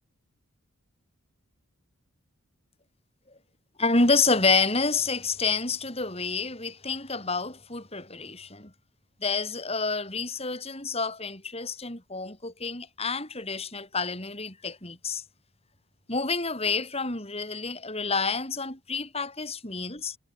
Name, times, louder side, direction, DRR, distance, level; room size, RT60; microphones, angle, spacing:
voice 1, 3.8-8.7 9.2-15.2 16.1-20.2, left 4 dB, 25° left, 6.4 m, -28 dB
head